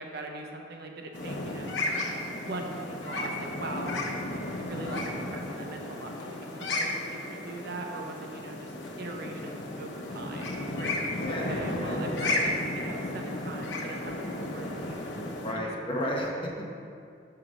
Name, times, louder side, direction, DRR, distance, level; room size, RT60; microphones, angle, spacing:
voice 1, 0.0-1.8 2.4-4.0 4.6-8.7 9.0-15.0 15.5-15.7 16.0-16.1, right 2 dB, 60° right, 2 dB, 0.7 m, -41 dB
sound 1, 1.1-15.5, left 2 dB, 85° left, 0.9 m, -34 dB
voice 2, 11.2-12.3 15.2-16.7, equal, 30° left, -1 dB, 1.0 m, -33 dB
5.9 x 4.8 x 5.1 m, 2.4 s
head